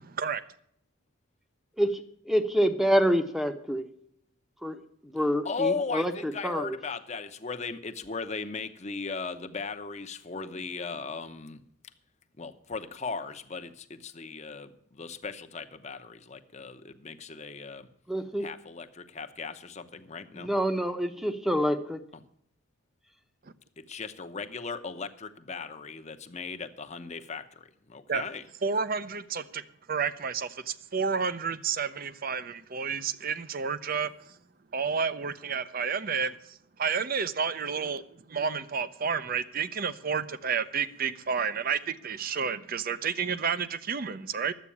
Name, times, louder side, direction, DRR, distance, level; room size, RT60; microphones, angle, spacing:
voice 1, 2.2-3.9 4.6-4.8 5.1-6.8 18.1-18.5 20.4-22.0, equal, ahead, 0.8 m, -27 dB
voice 2, 5.4-11.6 12.4-17.9 18.4-20.5 22.1-22.2 23.8-28.4, left 4 dB, 35° left, 0.8 m, -37 dB
voice 3, 28.6-29.6 29.9-34.4 34.7-38.0 38.3-44.5, right 6 dB, 45° right, 0.6 m, -30 dB
11.5 x 8.1 x 8.5 m
head